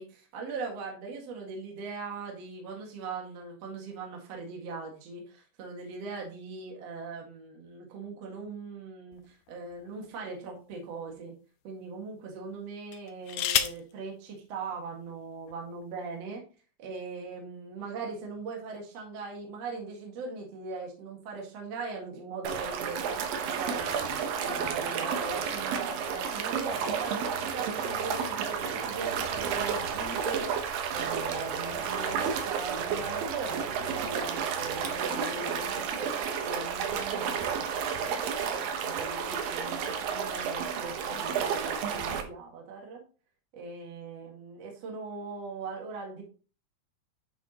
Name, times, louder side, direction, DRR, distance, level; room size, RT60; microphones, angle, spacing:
voice 1, 0.0-11.3 11.6-16.4 16.8-38.3 38.8-43.0 43.5-46.2, right 4 dB, 50° right, 0 dB, 2.6 m, -40 dB
sound 1, 9.1-10.3 11.1-11.2 12.9-13.9 15.1-15.2 15.5-15.9, left 10 dB, 75° left, 2.0 m, -32 dB
sound 2, 22.4-42.2, right 7 dB, 75° right, 2.7 m, -31 dB
sound 3, 26.4-35.0, left 5 dB, 50° left, 1.9 m, -51 dB
10.5 x 5.8 x 3.0 m, 0.36 s
omnidirectional pair, 4.2 m